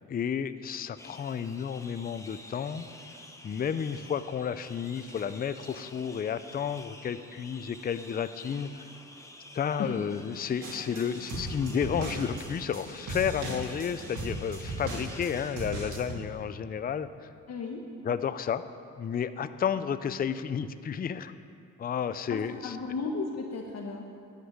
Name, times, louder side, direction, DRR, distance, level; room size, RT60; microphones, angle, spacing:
voice 1, 0.1-2.9 3.4-8.7 9.5-17.3 18.0-18.6 19.0-21.3 21.8-22.8, left 7 dB, 30° left, 12 dB, 0.5 m, -32 dB
sound 1, 1.0-15.5, left 1 dB, 10° left, 1.2 m, -49 dB
sound 2, 10.6-16.1, right 2 dB, 80° right, 3.0 m, -37 dB
voice 2, 17.5-17.8 22.3-24.1, left 4 dB, 60° left, 1 dB, 1.2 m, -34 dB
12.5 x 6.6 x 9.6 m, 2.4 s
cardioid pair, 90°, 30 cm